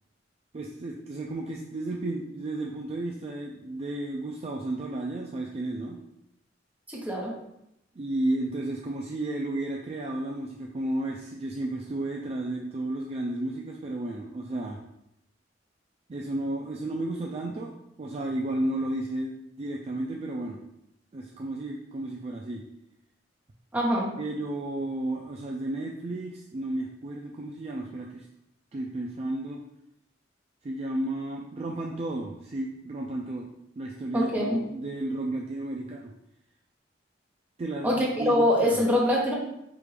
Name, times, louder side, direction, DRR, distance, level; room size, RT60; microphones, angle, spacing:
voice 1, 0.5-6.0 8.0-14.8 16.1-20.6 21.1-22.6 24.2-28.2 28.7-29.6 30.6-33.5 33.8-36.1 37.6-38.4 38.6-38.8, right 1 dB, 35° right, -1 dB, 0.3 m, -33 dB
voice 2, 6.9-7.4 23.7-24.1 34.1-34.6 37.8-39.3, equal, 10° right, -4 dB, 0.9 m, -24 dB
4.7 x 2.5 x 3.2 m, 0.80 s
head